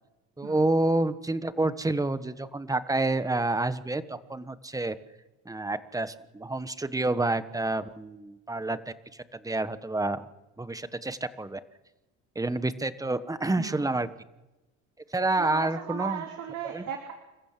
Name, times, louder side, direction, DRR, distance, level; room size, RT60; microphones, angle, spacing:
voice 1, 0.4-4.9 5.4-8.9 9.3-10.2 10.6-11.6 12.3-14.1 15.1-16.2 16.7-16.8, right 2 dB, 10° right, 12 dB, 1.2 m, -28 dB
voice 2, 13.6-13.9 15.3-17.1, right 9 dB, 60° right, 3 dB, 2.9 m, -36 dB
28.5 x 14.5 x 7.6 m, 1.0 s
supercardioid pair, 100°, 32 cm